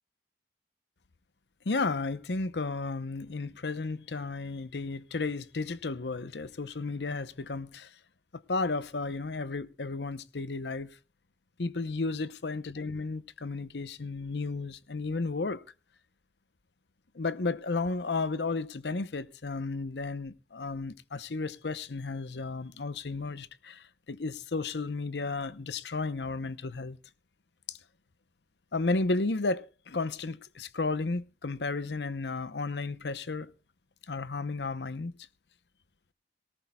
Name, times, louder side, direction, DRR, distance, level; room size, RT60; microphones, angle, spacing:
voice 1, 1.7-7.9 8.3-10.9 11.6-15.6 17.1-27.0 27.7-27.8 28.7-33.5 34.1-35.1, left 3 dB, 75° left, 0.8 m, -33 dB
18.5 x 18.0 x 2.3 m
head